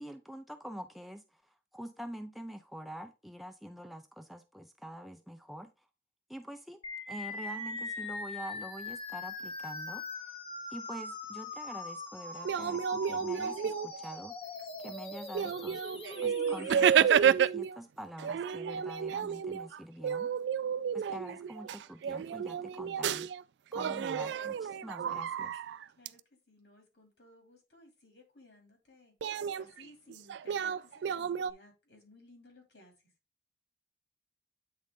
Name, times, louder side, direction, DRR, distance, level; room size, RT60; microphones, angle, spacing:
voice 1, 0.0-5.7 6.3-6.8 7.1-10.0 10.7-14.4 14.8-20.3 20.9-23.3 23.7-25.5, equal, ahead, 0.5 m, -45 dB
sound 1, 6.8-16.8, left 3 dB, 30° left, 0.9 m, -41 dB
sound 2, 12.4-14.2 14.8-14.9 15.3-17.8 18.2-23.4 23.7-26.1 29.2-31.5, right 8 dB, 80° right, 0.3 m, -31 dB
voice 2, 26.5-33.1, left 1 dB, 80° left, 2.6 m, -59 dB
8.4 x 3.9 x 3.6 m
head